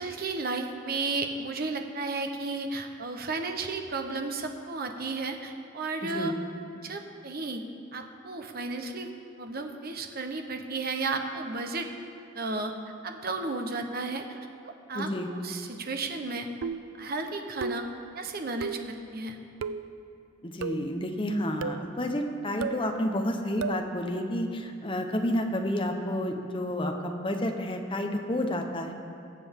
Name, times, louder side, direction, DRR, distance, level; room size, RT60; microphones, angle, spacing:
voice 1, 0.0-6.3 6.8-7.6 7.9-9.1 9.4-11.9 12.3-12.7 13.0-14.3 14.6-16.5 17.0-17.8 18.1-19.4, right 3 dB, 50° right, 5 dB, 0.9 m, -33 dB
voice 2, 6.0-6.3 14.9-15.3 20.4-28.9, left 1 dB, 25° left, 3 dB, 0.9 m, -30 dB
sound 1, 16.6-17.0 17.6-18.0 18.6-18.9 19.6-19.9 20.6-20.9 21.6-21.9 22.6-22.9 23.6-23.9, right 5 dB, 90° right, 0.4 m, -34 dB
21.5 x 7.7 x 3.6 m, 2.6 s
head